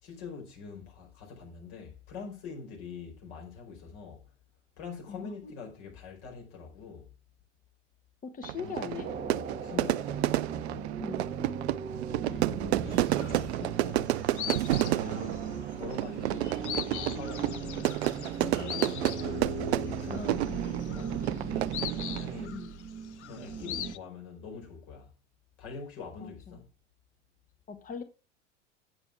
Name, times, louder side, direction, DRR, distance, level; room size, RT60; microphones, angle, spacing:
voice 1, 0.0-4.3 4.8-7.1 8.6-10.3 12.2-14.6 14.9-18.0 18.3-19.5 19.8-21.7 22.0-22.6 23.2-25.1 25.6-26.7, left 5 dB, 55° left, 4.9 m, -44 dB
voice 2, 8.2-9.1 11.0-11.3 22.5-22.7 26.2-26.3 27.7-28.0, left 6 dB, 20° left, 1.6 m, -39 dB
Fire / Fireworks, 8.4-22.5, right 14 dB, 60° right, 0.5 m, -31 dB
sound 1, 9.0-24.0, right 6 dB, 20° right, 1.1 m, -38 dB
sound 2, 12.9-13.7 14.0-24.0, left 11 dB, 70° left, 0.6 m, -41 dB
8.8 x 8.0 x 4.8 m
figure-of-eight pair, 80°, 36 cm